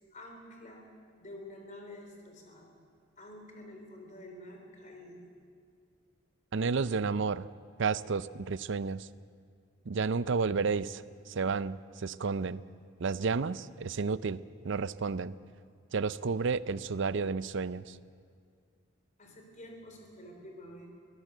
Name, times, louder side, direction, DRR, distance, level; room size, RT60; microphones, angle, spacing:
voice 1, 0.1-0.9 1.2-2.7 3.2-5.3 19.2-20.9, left 1 dB, 40° left, 2 dB, 4.2 m, -48 dB
voice 2, 6.5-7.5 7.8-9.1 9.9-12.6 13.0-15.3 15.9-18.0, right 4 dB, 65° right, 16 dB, 0.6 m, -31 dB
23.0 x 16.5 x 8.0 m, 2.2 s
head